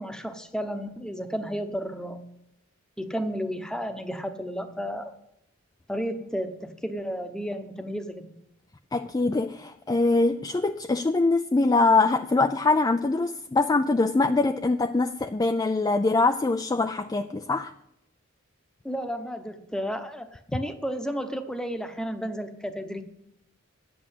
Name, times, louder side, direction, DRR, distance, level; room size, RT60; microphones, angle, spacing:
voice 1, 0.0-2.3 3.0-5.1 5.9-8.3 18.8-23.0, equal, 5° left, 7 dB, 0.9 m, -32 dB
voice 2, 8.9-17.7, left 3 dB, 20° left, 8 dB, 0.3 m, -23 dB
9.9 x 7.8 x 8.1 m, 0.79 s
head